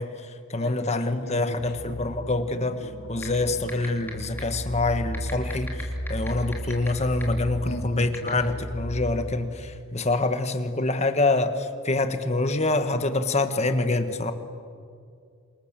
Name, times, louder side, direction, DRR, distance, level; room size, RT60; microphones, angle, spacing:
voice 1, 0.0-14.3, left 2 dB, 30° left, 9 dB, 1.5 m, -26 dB
voice 2, 0.6-1.7 7.6-8.1, equal, 50° left, 3 dB, 3.5 m, -35 dB
sound 1, 1.6-9.1, equal, 85° left, 4.9 m, -35 dB
sound 2, 3.2-3.3 3.7-4.1 4.4-4.5 5.1-6.9 7.2-7.3 8.1-8.3, left 2 dB, 10° left, 3.7 m, -35 dB
28.5 x 26.5 x 7.6 m, 2.3 s
head